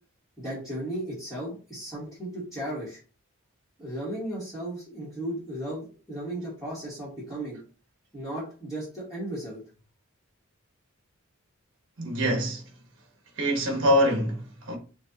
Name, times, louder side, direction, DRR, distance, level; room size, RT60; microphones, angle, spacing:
voice 1, 0.4-3.0 3.8-7.6 8.1-9.6, right 1 dB, ahead, 1.7 m, -35 dB
voice 2, 12.0-12.6 13.4-14.8, equal, 55° right, 1.3 m, -24 dB
6.1 x 2.6 x 2.9 m
head